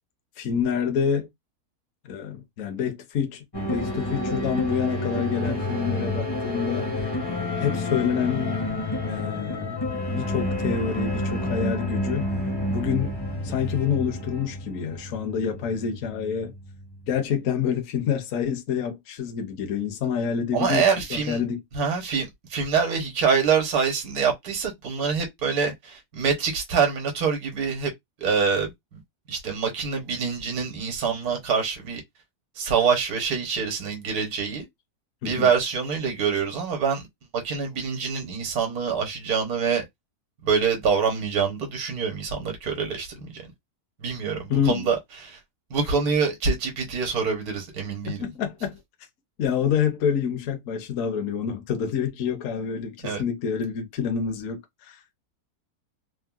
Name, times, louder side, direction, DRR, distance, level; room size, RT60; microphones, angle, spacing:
voice 1, 0.4-1.3 2.1-3.4 3.7-6.9 7.6-8.6 9.1-9.8 10.1-12.3 12.7-13.1 13.4-16.5 17.1-20.8 21.1-21.6 35.2-35.5 44.5-44.9 48.0-48.7 49.4-55.0, left 7 dB, 60° left, 1.0 m, -27 dB
sound 1, 3.5-17.2, left 1 dB, 25° left, 0.6 m, -29 dB
voice 2, 20.5-21.4 21.7-27.9 28.2-29.0 29.3-32.0 32.6-34.6 35.2-37.0 37.3-39.8 40.4-43.4 44.0-45.0 45.2-45.4 45.7-48.2 53.0-53.2, right 6 dB, 70° right, 1.5 m, -25 dB
3.5 x 2.1 x 2.3 m
omnidirectional pair, 1.7 m